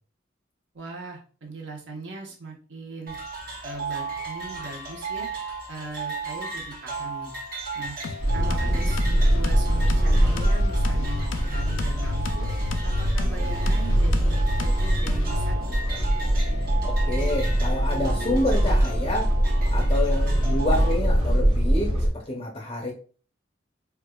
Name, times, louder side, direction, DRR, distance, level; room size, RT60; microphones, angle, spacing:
voice 1, 0.7-3.1 3.6-5.3 5.7-7.3 7.7-8.0 8.3-12.5 12.8-15.8, right 3 dB, 75° right, 0 dB, 1.0 m, -39 dB
sound 1, 3.1-20.9, right 3 dB, 50° right, 0.7 m, -36 dB
sound 2, 8.0-15.5, left 4 dB, 85° left, 0.4 m, -34 dB
sound 3, 8.2-22.1, equal, 25° right, 0.9 m, -23 dB
voice 2, 16.8-19.3 19.7-22.9, left 1 dB, 30° left, -1 dB, 0.5 m, -28 dB
4.5 x 2.4 x 2.2 m, 0.40 s
head